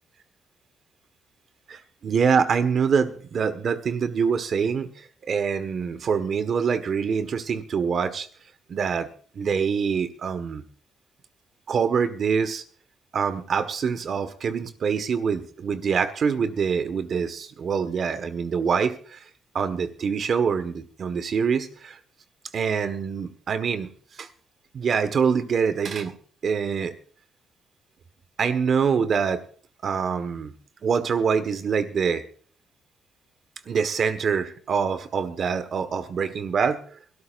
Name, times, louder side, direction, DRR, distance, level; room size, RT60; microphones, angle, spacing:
voice 1, 1.7-4.9 5.3-8.3 8.7-9.1 9.3-10.6 11.7-12.6 13.1-19.2 19.5-22.0 22.5-23.9 24.2-24.3 24.7-26.1 26.4-26.9 28.4-29.4 29.8-30.5 30.8-32.2 33.7-36.8, right 6 dB, 55° right, 11 dB, 1.5 m, -25 dB
24.5 x 13.5 x 2.6 m, 0.43 s
cardioid pair, 90°, 0 cm